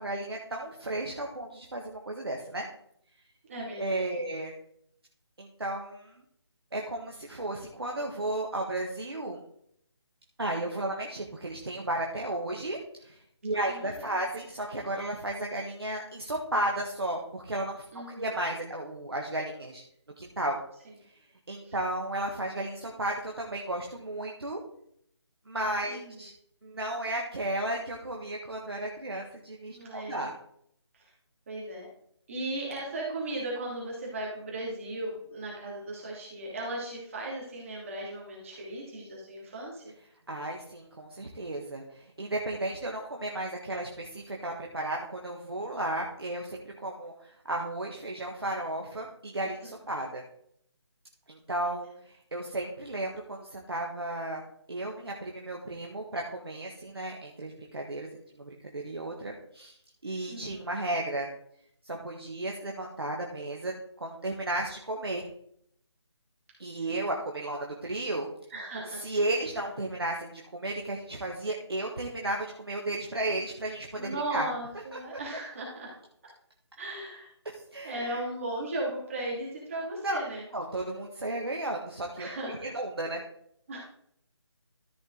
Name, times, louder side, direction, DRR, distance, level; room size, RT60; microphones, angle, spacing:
voice 1, 0.0-2.7 3.8-4.5 5.4-6.1 6.7-9.4 10.4-19.8 20.2-20.6 21.5-24.6 25.5-26.3 26.6-30.3 40.3-50.2 51.3-54.4 54.7-59.7 60.0-61.3 61.8-65.2 66.6-68.3 69.0-74.5 77.7-78.2 80.0-80.2 80.5-82.3 82.7-83.2, right 1 dB, 60° right, 0 dB, 1.6 m, -34 dB
voice 2, 3.4-4.1 13.5-14.3 17.9-18.3 20.8-20.9 21.6-21.8 25.9-26.2 29.7-30.3 30.9-31.1 31.5-31.9 32.3-39.9 49.6-49.7 51.5-51.9 60.3-60.7 66.7-67.1 68.5-69.0 73.9-76.0 76.8-77.3 77.8-80.5 82.2-82.8 83.7-83.8, right 1 dB, 30° right, -4 dB, 2.7 m, -37 dB
13.5 x 5.3 x 3.9 m, 0.69 s
figure-of-eight pair, 155°, 15 cm